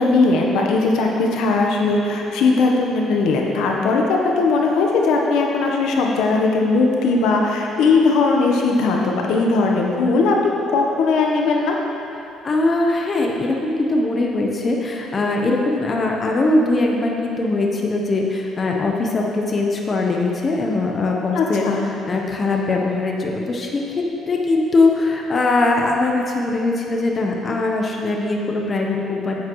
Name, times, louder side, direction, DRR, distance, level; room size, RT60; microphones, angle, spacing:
voice 1, 0.0-10.3 10.7-11.7 21.3-21.8, left 3 dB, 80° left, 0 dB, 1.0 m, -18 dB
voice 2, 12.4-21.7 22.1-29.5, left 2 dB, 30° left, 0 dB, 0.8 m, -21 dB
9.4 x 8.4 x 3.1 m, 2.7 s
cardioid pair, 125°, 0 cm